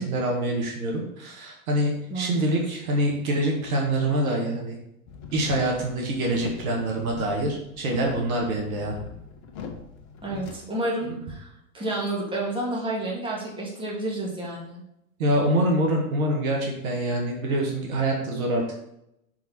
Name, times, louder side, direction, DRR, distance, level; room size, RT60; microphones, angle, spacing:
voice 1, 0.0-4.8 5.3-9.0 15.2-18.8, right 1 dB, 65° right, 0 dB, 2.0 m, -25 dB
sound 1, 5.1-10.5, left 6 dB, 45° left, 1.2 m, -41 dB
voice 2, 10.2-11.5 11.7-14.8, right 2 dB, 10° right, -4 dB, 2.4 m, -30 dB
6.0 x 4.8 x 4.4 m, 0.79 s
hypercardioid pair, 100°, 44 cm